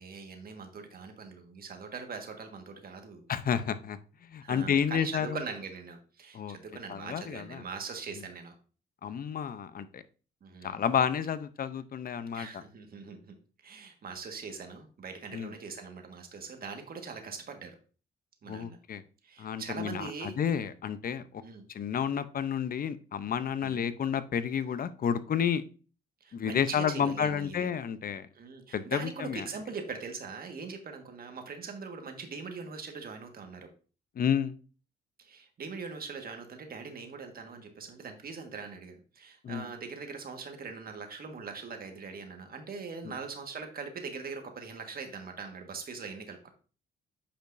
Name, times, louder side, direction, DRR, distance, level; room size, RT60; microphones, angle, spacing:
voice 1, 0.0-3.2 4.4-8.5 10.4-10.8 12.3-13.3 13.6-17.8 18.4-18.8 19.2-20.4 21.4-21.6 23.6-23.9 26.2-27.6 28.3-33.7 35.2-46.5, right 5 dB, 50° right, 5 dB, 1.6 m, -42 dB
voice 2, 3.3-4.0 4.3-5.4 6.3-6.6 6.9-7.6 9.0-10.0 10.6-12.6 15.3-15.5 18.5-19.0 19.4-21.3 21.7-25.6 26.3-28.3 28.7-29.5 34.2-34.5 39.4-39.7 43.0-43.1, left 8 dB, 45° left, 13 dB, 0.7 m, -30 dB
8.7 x 5.4 x 2.6 m, 0.37 s
cardioid pair, 90°, 20 cm